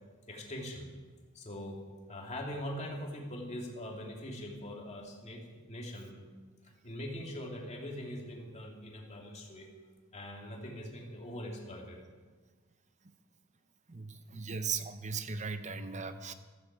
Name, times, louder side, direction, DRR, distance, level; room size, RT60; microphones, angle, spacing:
voice 1, 0.3-0.9 1.3-1.8 2.1-6.2 6.8-9.7 10.1-12.0, left 1 dB, 30° left, -1 dB, 2.8 m, -42 dB
voice 2, 13.9-16.3, right 5 dB, 35° right, 10 dB, 0.9 m, -37 dB
15.0 x 14.0 x 4.8 m, 1.4 s
head